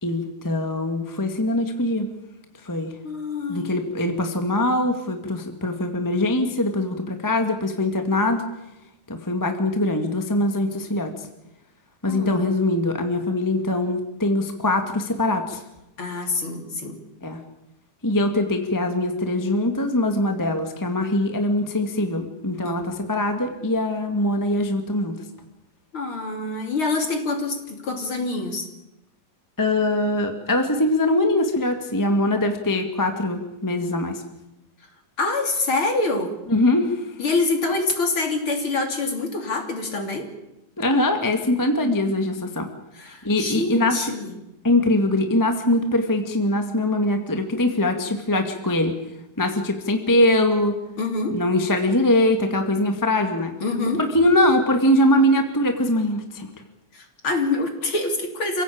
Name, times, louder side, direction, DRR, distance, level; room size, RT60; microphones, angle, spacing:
voice 1, 0.0-2.1 2.6-2.9 3.5-8.4 9.1-11.3 12.0-15.6 17.2-17.4 18.0-25.2 29.6-34.2 36.5-37.0 40.8-42.7 43.2-44.0 44.6-48.9 49.4-50.8 51.3-53.5 53.9-56.5, left 1 dB, 10° left, 5 dB, 1.4 m, -22 dB
voice 2, 3.0-3.7 12.1-12.3 16.0-17.0 22.6-22.8 25.9-28.7 35.2-36.3 37.2-40.3 42.9-44.3 51.0-51.4 53.6-54.0 56.9-58.6, left 3 dB, 40° left, 4 dB, 3.9 m, -26 dB
29.0 x 17.0 x 8.7 m, 0.92 s
omnidirectional pair, 3.6 m